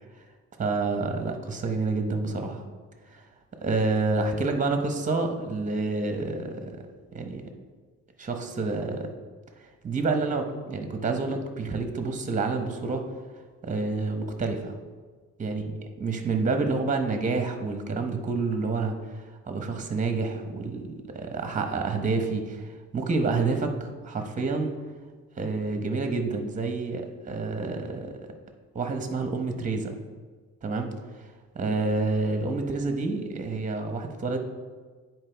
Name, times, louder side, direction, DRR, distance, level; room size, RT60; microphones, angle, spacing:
voice 1, 0.6-2.6 3.1-3.2 3.6-6.7 7.1-7.4 8.2-9.1 9.6-13.0 13.6-14.7 15.4-15.7 16.0-20.8 21.1-24.7 25.4-28.1 28.7-30.0 30.6-30.9 31.2-31.3 31.5-34.4, right 3 dB, 25° right, 5 dB, 0.9 m, -28 dB
9.6 x 4.5 x 3.4 m, 1.4 s
cardioid pair, 90°, 30 cm